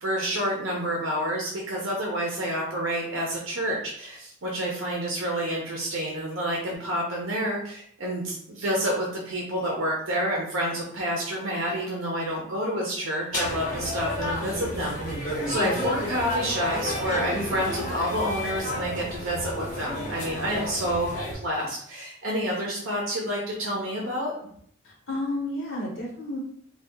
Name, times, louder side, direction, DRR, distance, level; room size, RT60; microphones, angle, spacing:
voice 1, 0.0-24.3, equal, 80° right, -2 dB, 0.7 m, -29 dB
sound 1, 13.3-21.3, left 1 dB, 45° left, 1.1 m, -31 dB
voice 2, 24.8-26.4, left 1 dB, 80° left, -5 dB, 0.9 m, -31 dB
2.7 x 2.3 x 3.5 m, 0.63 s
head